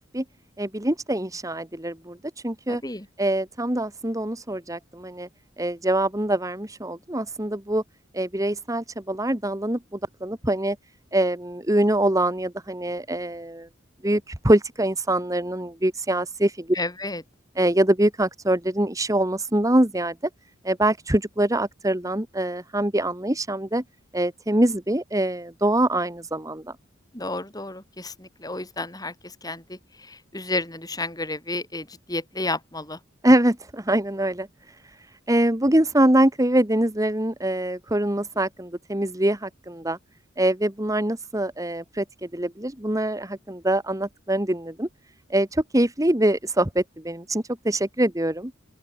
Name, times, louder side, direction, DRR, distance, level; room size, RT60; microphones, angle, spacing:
voice 1, 0.6-2.8 3.2-5.3 5.6-7.8 8.1-10.8 11.1-13.7 14.0-16.8 17.5-20.1 20.6-23.8 24.1-26.7 33.2-40.0 40.4-44.9 45.3-48.5, right 1 dB, 15° right, 1.6 m, -24 dB
voice 2, 2.7-3.1 16.7-17.2 27.1-29.8 30.1-33.0, left 2 dB, 20° left, 7.1 m, -31 dB
open air
head